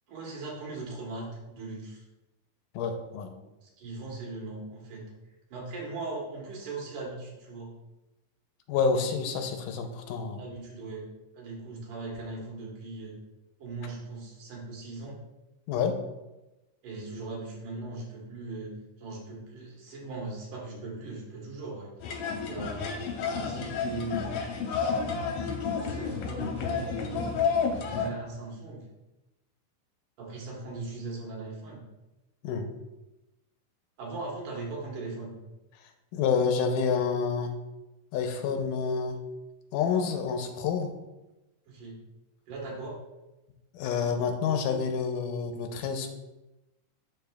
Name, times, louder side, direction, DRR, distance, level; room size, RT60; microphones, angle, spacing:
voice 1, 0.1-2.0 3.6-5.0 5.5-7.7 10.3-11.1 11.3-13.2 13.6-15.2 16.8-21.9 22.5-22.9 23.4-24.5 25.6-27.3 27.7-28.8 30.2-31.8 34.0-35.3 41.7-42.0 42.5-43.0, right 3 dB, 75° right, -2 dB, 2.9 m, -39 dB
voice 2, 2.8-3.3 8.7-10.4 15.7-16.0 32.4-32.7 36.1-37.5 38.1-39.2 39.7-40.9 43.7-46.1, left 6 dB, 85° left, 5 dB, 2.2 m, -28 dB
sound 1, 22.0-28.1, left 5 dB, 70° left, 1.8 m, -31 dB
11.5 x 4.3 x 2.3 m, 1.0 s
omnidirectional pair, 3.8 m